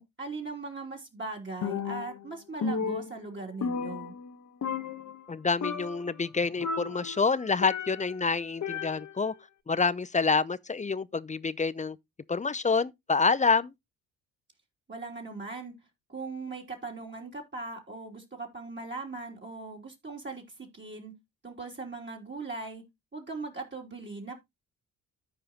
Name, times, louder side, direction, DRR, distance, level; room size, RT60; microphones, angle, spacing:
voice 1, 0.0-4.1 14.9-15.8 16.1-21.1 21.4-22.8 23.1-24.3, right 3 dB, 30° right, 3.1 m, -39 dB
Percussion, 1.6-2.3 2.6-4.4 4.6-5.3 5.6-6.1 6.6-8.2 8.6-9.3, left 5 dB, 45° left, 1.3 m, -34 dB
voice 2, 5.3-9.3 9.7-12.0 12.3-13.7, left 4 dB, 20° left, 0.6 m, -27 dB
14.0 x 4.8 x 2.9 m
hypercardioid pair, 50°, 40 cm